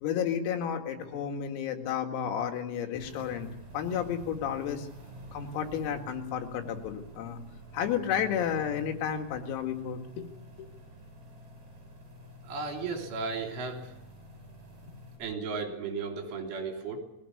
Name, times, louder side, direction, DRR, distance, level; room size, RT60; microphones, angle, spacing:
voice 1, 0.0-3.5 3.7-4.9 5.3-7.4 7.7-10.3 10.6-10.7, left 8 dB, 90° left, 4 dB, 4.6 m, -32 dB
sound 1, 2.9-15.2, right 1 dB, 45° right, 9.6 m, -49 dB
voice 2, 12.5-13.9 14.9-17.0, right 4 dB, 70° right, 3 dB, 5.7 m, -35 dB
21.5 x 16.5 x 9.7 m, 0.92 s
omnidirectional pair, 6.0 m